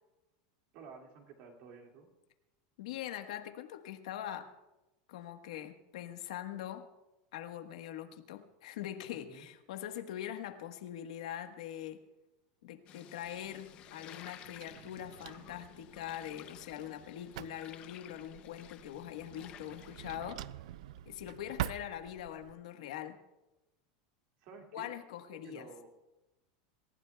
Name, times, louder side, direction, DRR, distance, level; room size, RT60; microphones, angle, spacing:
voice 1, 0.7-2.1 9.3-9.5 24.4-24.9 25.3-25.9, right 5 dB, 40° right, 2 dB, 2.3 m, -52 dB
voice 2, 2.8-4.5 5.1-6.9 7.3-12.0 12.6-20.5 21.0-23.2 24.7-25.7, left 11 dB, 80° left, 6 dB, 1.3 m, -43 dB
sound 1, 12.9-20.2, left 11 dB, 30° left, 0.6 m, -54 dB
Drawer open or close, 13.2-22.5, right 13 dB, 75° right, 0.4 m, -46 dB
27.5 x 15.5 x 2.3 m, 1.0 s
supercardioid pair, 180°, 4 cm